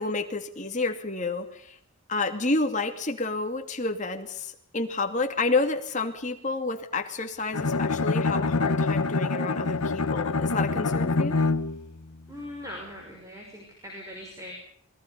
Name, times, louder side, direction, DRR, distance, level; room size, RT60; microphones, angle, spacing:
voice 1, 0.0-1.8 2.1-11.4, left 3 dB, 35° left, 5 dB, 2.5 m, -29 dB
Bowed string instrument, 7.5-11.9, left 3 dB, 90° left, 1.0 m, -25 dB
voice 2, 12.3-14.5, left 1 dB, 15° right, 0 dB, 5.9 m, -41 dB
28.5 x 22.0 x 5.4 m, 0.65 s
head